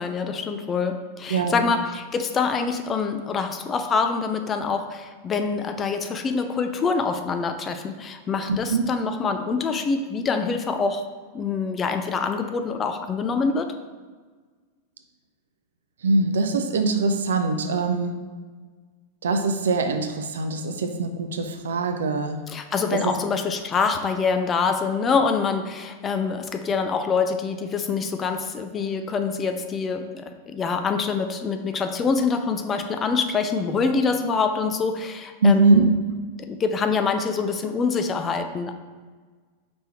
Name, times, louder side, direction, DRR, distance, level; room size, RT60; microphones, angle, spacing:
voice 1, 0.0-11.0 11.3-13.7 22.5-35.9 36.4-38.7, left 5 dB, 25° left, 7 dB, 0.4 m, -25 dB
voice 2, 1.3-1.6 8.5-8.8 16.0-18.2 19.2-22.4 35.4-35.8, right 3 dB, 65° right, 7 dB, 0.4 m, -22 dB
5.2 x 3.3 x 2.9 m, 1.5 s
figure-of-eight pair, 90°, 0 cm